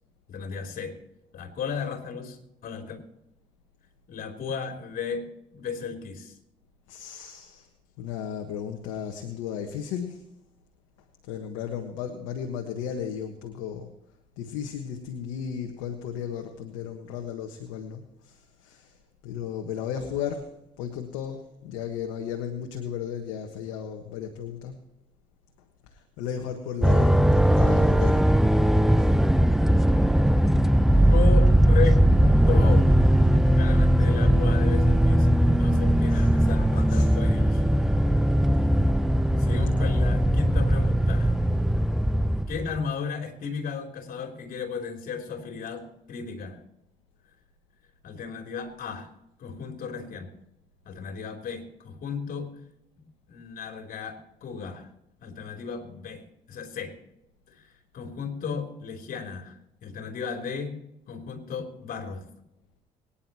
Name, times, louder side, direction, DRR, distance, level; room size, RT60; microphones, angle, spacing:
voice 1, 0.3-1.0 1.3-3.0 4.1-6.3 31.1-32.1 32.5-33.1 33.5-37.6 39.4-41.3 42.5-46.6 48.0-49.1 49.4-50.3 50.8-52.5 53.3-54.9 55.2-57.0 57.5-57.7 57.9-59.5 59.8-60.8 61.1-62.3, left 6 dB, 60° left, 4 dB, 3.3 m, -34 dB
voice 2, 6.9-7.7 8.0-10.2 11.3-13.9 14.4-19.0 19.2-20.5 20.8-24.8 25.9-28.2 29.0-29.1 36.1-36.3 36.9-37.1, left 8 dB, 85° left, 3 dB, 1.4 m, -35 dB
sound 1, 26.8-42.8, equal, ahead, 0.7 m, -20 dB
24.0 x 10.0 x 3.0 m, 0.84 s
hypercardioid pair, 60°, 17 cm